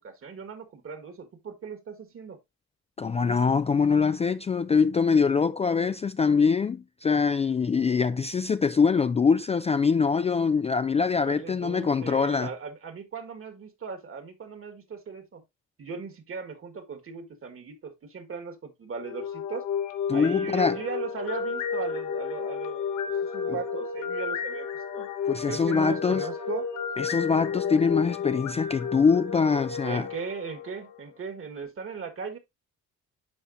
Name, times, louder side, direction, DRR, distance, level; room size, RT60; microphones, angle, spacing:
voice 1, 0.0-2.4 11.2-15.4 15.8-19.7 20.1-22.9 23.2-25.1 25.5-26.7 29.8-32.4, right 5 dB, 45° right, 1.7 m, -38 dB
voice 2, 3.0-12.5 20.1-20.8 25.3-26.3 27.0-30.1, left 5 dB, 20° left, 0.3 m, -24 dB
sound 1, 19.0-31.1, left 6 dB, 70° left, 1.3 m, -32 dB
11.5 x 4.2 x 2.6 m
cardioid pair, 90°, 30 cm